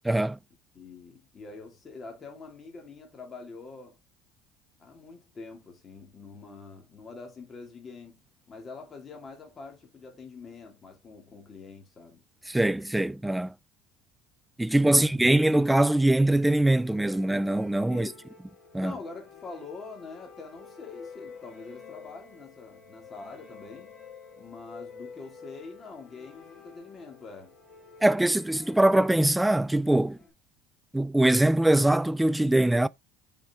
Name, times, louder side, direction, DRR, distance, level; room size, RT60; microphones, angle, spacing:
voice 1, 0.1-0.4 12.5-13.5 14.6-18.1 18.7-18.9 28.0-30.2 30.9-32.9, right 1 dB, 5° right, 0.3 m, -22 dB
voice 2, 0.7-4.0 4.8-12.2 14.7-15.2 17.9-18.2 18.8-24.0 24.3-27.5, left 4 dB, 30° left, 2.1 m, -45 dB
sound 1, 16.8-30.3, left 5 dB, 45° left, 3.9 m, -49 dB
7.5 x 4.5 x 3.5 m
cardioid pair, 130°, 0 cm